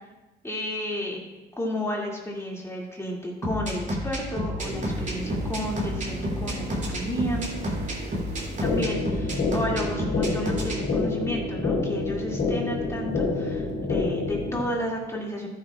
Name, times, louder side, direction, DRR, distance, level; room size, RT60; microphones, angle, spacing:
voice 1, 0.4-1.2 1.6-7.5 8.6-15.5, equal, 15° left, -2 dB, 2.4 m, -32 dB
sound 1, 3.4-10.8, equal, 40° right, 3.2 m, -30 dB
sound 2, 4.6-9.7 13.7-13.8, right 2 dB, 55° right, 2.2 m, -37 dB
sound 3, 8.6-14.6, left 3 dB, 60° left, 2.9 m, -27 dB
14.0 x 9.5 x 2.4 m, 1.1 s
cardioid pair, 90°, 20 cm